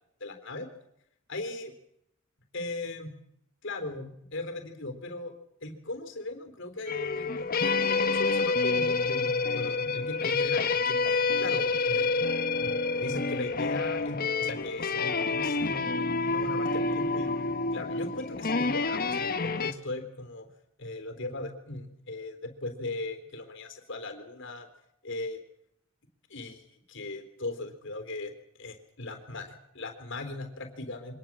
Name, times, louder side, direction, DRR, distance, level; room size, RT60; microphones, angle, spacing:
voice 1, 0.2-0.7 1.3-1.7 2.5-3.1 3.6-5.3 5.6-7.6 7.9-12.1 12.5-17.3 17.7-20.5 20.8-24.7 25.0-25.4 26.3-28.3 28.6-29.5 29.7-31.2, left 2 dB, 60° left, 7 dB, 3.7 m, -38 dB
sound 1, 6.9-19.7, left 4 dB, 45° left, 1.2 m, -28 dB
24.5 x 19.5 x 7.5 m, 0.77 s
head